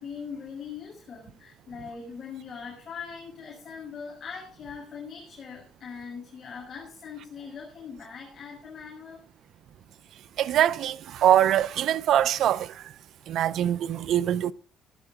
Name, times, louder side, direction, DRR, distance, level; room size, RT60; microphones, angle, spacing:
voice 1, 0.0-9.2, left 6 dB, 45° left, 6.6 m, -41 dB
voice 2, 10.4-12.9 13.3-14.5, right 11 dB, 65° right, 0.7 m, -23 dB
16.5 x 11.5 x 3.9 m
cardioid pair, 90°, 0 cm